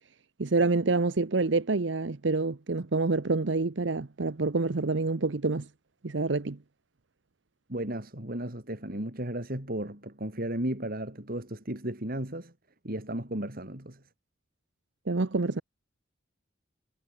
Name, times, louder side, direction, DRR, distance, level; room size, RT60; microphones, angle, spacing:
voice 1, 0.4-5.7 6.0-6.6 15.1-15.6, right 3 dB, 65° right, 0.8 m, -27 dB
voice 2, 7.7-12.5 12.8-14.0, right 1 dB, 50° right, 4.3 m, -34 dB
head